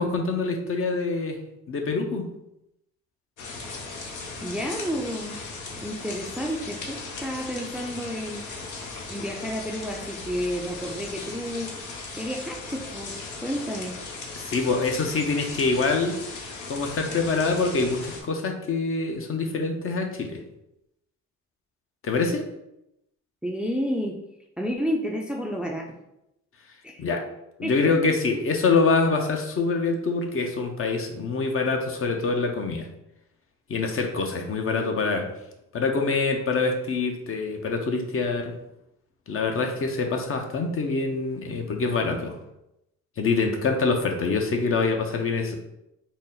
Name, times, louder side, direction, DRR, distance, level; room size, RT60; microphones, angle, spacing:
voice 1, 0.0-1.4 1.7-2.3 14.4-16.2 16.7-20.4 22.0-22.5 27.0-27.2 27.6-32.9 33.7-35.3 35.7-38.6 39.3-42.4 43.2-45.6, left 4 dB, 45° left, 4 dB, 0.7 m, -25 dB
sound 1, 3.4-18.2, left 3 dB, 75° left, 0.8 m, -37 dB
voice 2, 4.4-5.4 5.8-8.4 9.1-11.7 12.1-13.1 13.4-14.0 23.4-24.2 24.6-25.9 26.8-27.0 27.6-28.1, equal, 5° right, 1 dB, 0.4 m, -30 dB
4.0 x 2.1 x 3.8 m, 0.85 s
cardioid pair, 90°, 30 cm